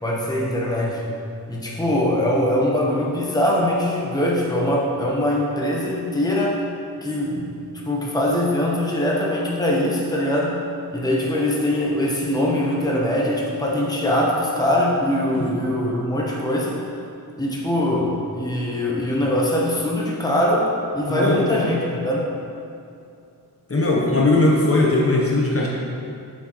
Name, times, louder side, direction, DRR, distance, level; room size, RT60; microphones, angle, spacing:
voice 1, 0.0-1.1 1.5-6.6 7.0-7.6 7.8-10.6 10.9-16.8 17.4-20.7 20.9-22.3, left 1 dB, 10° left, -4 dB, 1.0 m, -22 dB
voice 2, 21.1-21.6 23.7-25.7, left 2 dB, 35° left, -4 dB, 1.0 m, -19 dB
8.0 x 6.3 x 3.1 m, 2.5 s
wide cardioid pair, 125°, 38 cm